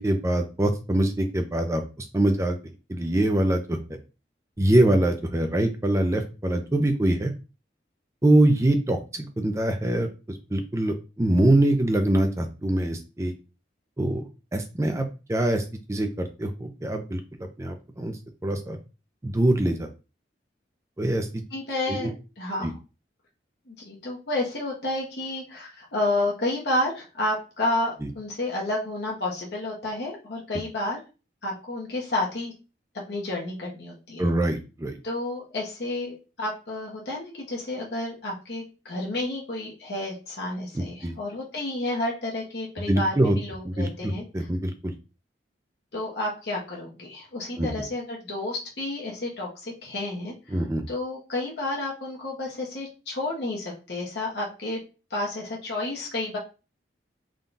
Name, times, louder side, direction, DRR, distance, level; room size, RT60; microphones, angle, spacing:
voice 1, 0.0-2.6 2.9-3.8 4.6-7.3 8.2-13.3 14.0-14.2 14.5-15.6 15.9-18.8 19.2-19.9 21.0-21.4 21.9-22.1 22.6-22.7 28.0-28.1 34.2-34.9 40.7-41.1 42.9-43.4 43.6-44.9 47.6-47.7 50.5-50.8, right 1 dB, 15° right, 6 dB, 0.4 m, -24 dB
voice 2, 21.5-22.1 22.4-22.8 23.7-31.0 31.4-32.5 33.1-34.2 35.0-44.5 45.9-50.3 50.9-54.8 55.1-56.4, left 2 dB, 70° left, -3 dB, 1.0 m, -30 dB
3.7 x 2.3 x 3.9 m, 0.32 s
head